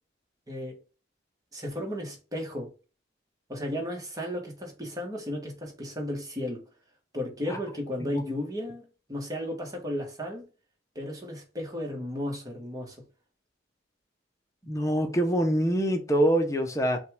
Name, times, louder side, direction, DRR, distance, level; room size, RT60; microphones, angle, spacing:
voice 1, 0.5-0.8 1.5-2.7 3.5-6.6 7.1-10.5 10.9-13.0, left 1 dB, 20° right, 1.5 m, -34 dB
voice 2, 14.6-17.0, right 1 dB, 15° left, 0.9 m, -25 dB
5.6 x 2.5 x 3.4 m
head